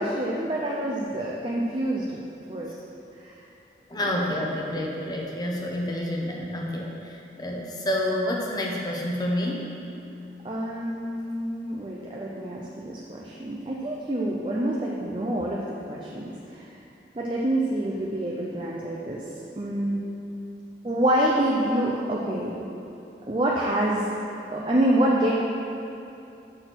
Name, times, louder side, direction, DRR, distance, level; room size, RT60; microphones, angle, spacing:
voice 1, 0.0-2.2 2.5-2.7 3.2-3.3 4.7-4.8 10.4-15.6 15.9-16.2 17.2-19.2 19.6-20.0 20.8-22.7 23.3-24.1 24.5-25.3, right 1 dB, 30° right, -4 dB, 0.6 m, -26 dB
voice 2, 3.9-9.7, left 1 dB, 25° left, -1 dB, 1.0 m, -29 dB
6.6 x 6.5 x 6.2 m, 2.7 s
head